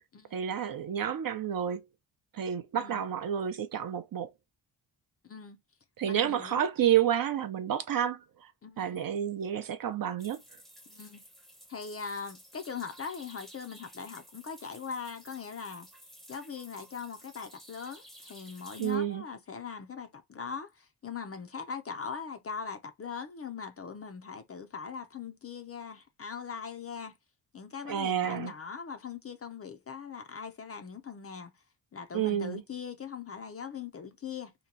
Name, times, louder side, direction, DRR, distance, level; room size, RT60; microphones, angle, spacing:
voice 1, 0.3-1.8 2.3-4.3 6.0-8.5 8.8-10.6 18.8-19.2 27.8-28.5 32.1-32.6, right 9 dB, 50° right, 0.5 m, -30 dB
voice 2, 5.2-5.6 6.1-6.6 8.6-9.0 10.9-11.2 11.7-15.9 16.3-27.2 27.5-31.5 31.9-34.5, left 6 dB, 30° left, 0.4 m, -41 dB
sound 1, 10.2-19.0, equal, ahead, 0.7 m, -53 dB
2.9 x 2.2 x 3.8 m
cardioid pair, 105°, 46 cm